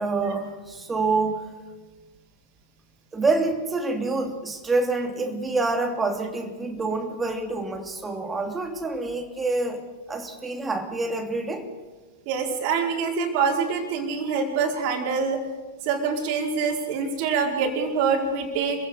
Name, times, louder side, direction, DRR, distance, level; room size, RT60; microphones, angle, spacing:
voice 1, 0.0-1.5 3.1-11.7, right 3 dB, 15° right, 4 dB, 2.9 m, -27 dB
voice 2, 12.3-15.4 15.8-18.9, right 5 dB, 45° right, 1 dB, 4.8 m, -25 dB
26.5 x 16.0 x 6.6 m, 1.3 s
figure-of-eight pair, 100°, 0 cm